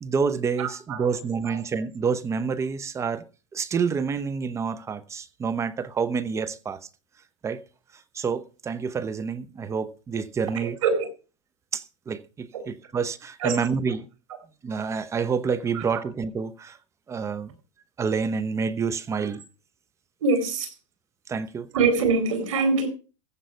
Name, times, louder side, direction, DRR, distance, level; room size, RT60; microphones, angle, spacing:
voice 1, 0.0-3.2 3.5-6.8 7.4-7.6 8.1-10.8 11.7-14.1 14.6-16.8 17.1-17.5 18.0-19.4 21.3-21.7, right 5 dB, 15° right, 0.9 m, -28 dB
voice 2, 0.6-1.1 1.4-1.6 10.6-11.1 12.5-12.6 13.4-13.5 15.7-15.8 20.2-20.7 21.7-22.9, right 4 dB, 80° right, 4.1 m, -24 dB
15.0 x 7.5 x 5.6 m
supercardioid pair, 135°, 16 cm